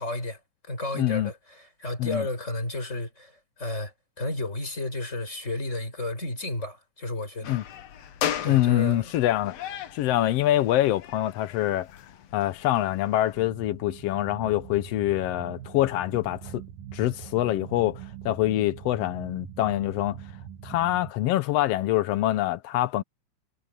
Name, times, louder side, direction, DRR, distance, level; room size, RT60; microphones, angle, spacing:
voice 1, 0.0-7.6 8.4-9.1, left 2 dB, 20° left, 6.5 m, -32 dB
voice 2, 0.9-1.3 2.0-2.3 7.4-7.6 8.4-9.6 9.9-12.1 12.3-16.6 16.9-20.2 20.6-23.0, left 14 dB, 80° left, 1.4 m, -25 dB
sound 1, 7.4-13.5, left 9 dB, 60° left, 2.1 m, -37 dB
sound 2, 13.3-21.1, right 10 dB, 75° right, 2.7 m, -43 dB
omnidirectional pair, 3.8 m